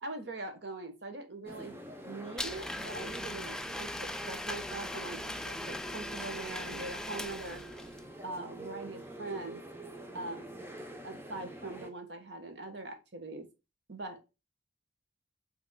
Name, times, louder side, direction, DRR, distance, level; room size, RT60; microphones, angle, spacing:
voice 1, 0.0-1.8 2.0-7.6 8.2-9.6 10.1-10.5 11.0-13.5 13.9-14.2, right 2 dB, 70° right, 6 dB, 1.3 m, -42 dB
sound 1, 1.4-11.9, right 1 dB, 15° right, 0.8 m, -46 dB
Domestic sounds home sounds, 2.4-8.0, left 1 dB, 5° left, 0.3 m, -39 dB
6.1 x 3.6 x 2.2 m, 0.26 s
head